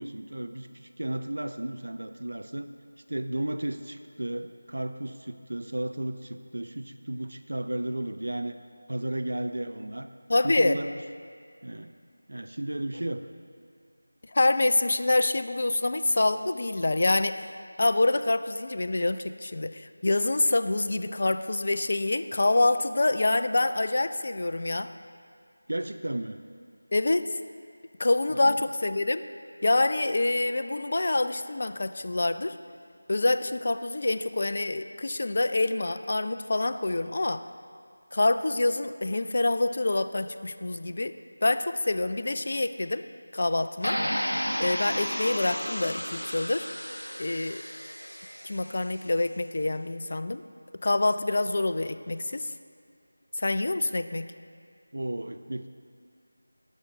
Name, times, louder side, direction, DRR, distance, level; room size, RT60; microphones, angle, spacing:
voice 1, 0.0-2.7 3.1-8.6 8.9-10.1 10.4-10.9 11.6-11.9 12.3-13.2 25.7-26.4 28.3-28.6 54.9-55.7, right 1 dB, 55° right, 8 dB, 0.4 m, -33 dB
voice 2, 10.3-10.8 14.3-17.5 17.8-24.9 26.9-27.4 28.0-29.2 29.6-32.6 33.1-37.4 38.1-41.1 41.4-43.0 43.3-44.0 44.6-46.7 47.2-47.6 48.4-50.4 50.8-52.5 53.4-54.3, left 2 dB, 40° left, 11 dB, 0.3 m, -26 dB
sound 1, 43.8-48.8, equal, 85° left, 0.6 m, -33 dB
11.5 x 6.4 x 4.7 m, 2.2 s
figure-of-eight pair, 170°, 0 cm